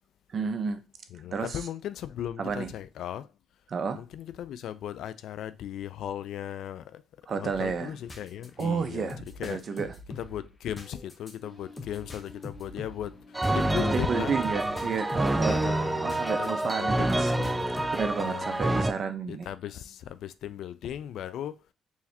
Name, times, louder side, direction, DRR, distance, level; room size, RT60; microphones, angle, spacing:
voice 1, 0.3-0.8 1.3-1.6 2.4-2.7 3.7-4.0 7.3-7.9 8.6-9.9 13.9-15.6 16.0-17.3 17.9-19.5, right 5 dB, 50° right, 0.8 m, -31 dB
voice 2, 1.1-3.3 4.0-7.0 7.4-9.1 9.4-9.6 10.2-13.2 13.5-14.4 14.7-15.0 15.5-17.8 18.2-18.6 19.3-21.5, left 10 dB, 75° left, 0.4 m, -37 dB
sound 1, 7.4-16.7 17.1-18.2, left 2 dB, 25° left, 1.1 m, -45 dB
sound 2, 13.3-18.9, right 1 dB, 10° right, 0.3 m, -27 dB
4.7 x 3.2 x 2.8 m
cardioid pair, 90°, 0 cm